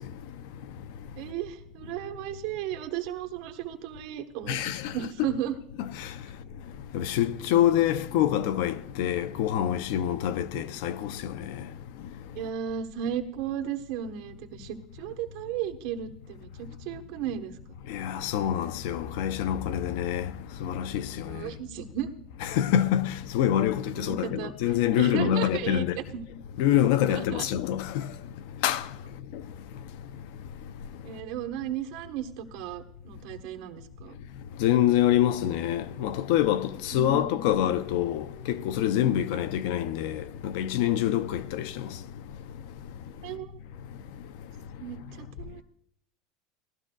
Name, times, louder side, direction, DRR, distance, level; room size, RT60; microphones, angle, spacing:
voice 1, 1.2-5.5 10.5-10.6 12.3-17.5 21.3-22.1 24.0-24.5 24.9-26.2 27.1-27.5 31.0-34.2 36.9-37.6 43.2-43.6 44.8-45.6, right 10 dB, 60° right, 1.2 m, -35 dB
voice 2, 4.5-4.8 6.9-11.1 17.9-20.2 20.6-21.1 22.4-26.0 26.6-28.0 28.6-28.8 34.6-41.7, left 11 dB, 70° left, 0.5 m, -26 dB
18.0 x 13.0 x 2.3 m
supercardioid pair, 140°, 0 cm